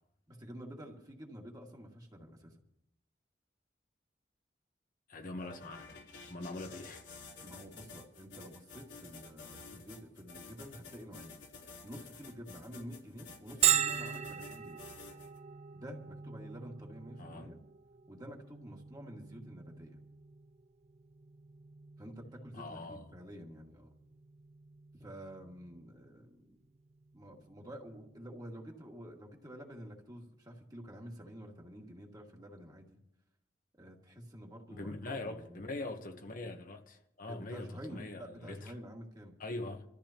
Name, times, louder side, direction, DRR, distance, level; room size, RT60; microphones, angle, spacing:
voice 1, 0.3-2.5 7.4-14.8 15.7-17.6 18.1-20.0 22.0-23.9 24.9-26.6 27.1-33.0 33.8-35.7 37.3-39.3, equal, 20° right, 2.1 m, -49 dB
voice 2, 5.1-5.9 6.3-7.0 17.2-17.5 22.5-23.1 34.7-38.7 39.4-39.8, left 2 dB, 50° left, 1.2 m, -42 dB
sound 1, 5.4-15.4, left 4 dB, 85° left, 3.4 m, -51 dB
Bell, 13.6-29.1, right 9 dB, 40° right, 0.5 m, -39 dB
26.5 x 14.0 x 3.0 m
head